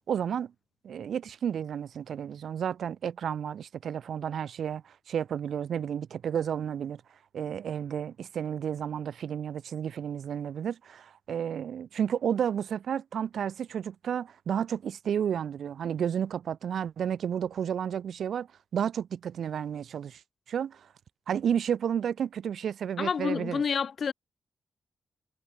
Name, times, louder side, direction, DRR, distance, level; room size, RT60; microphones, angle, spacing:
voice 1, 0.1-0.5 0.8-7.0 7.3-18.5 18.7-20.2 20.5-20.9 21.3-23.6, right 8 dB, 85° right, 0.9 m, -31 dB
voice 2, 23.0-24.1, left 6 dB, 60° left, 0.3 m, -29 dB
wide cardioid pair, 120°, 0 cm